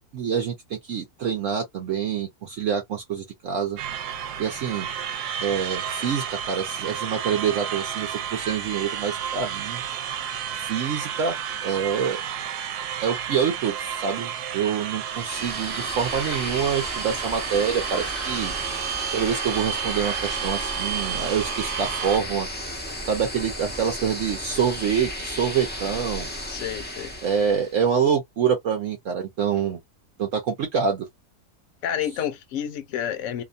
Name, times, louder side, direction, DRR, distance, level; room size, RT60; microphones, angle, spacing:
voice 1, 0.1-3.8 4.4-4.9 5.4-9.8 10.6-11.4 11.6-12.2 13.0-18.5 19.1-22.5 23.1-26.3 27.2-29.8 30.2-31.1, right 7 dB, 65° right, 0.9 m, -26 dB
sound 1, 3.8-22.2, right 9 dB, 80° right, 1.1 m, -31 dB
sound 2, 15.1-27.8, left 1 dB, 10° left, 0.4 m, -34 dB
voice 2, 26.4-27.2 31.8-33.4, left 9 dB, 60° left, 0.9 m, -30 dB
2.8 x 2.1 x 2.5 m
omnidirectional pair, 1.7 m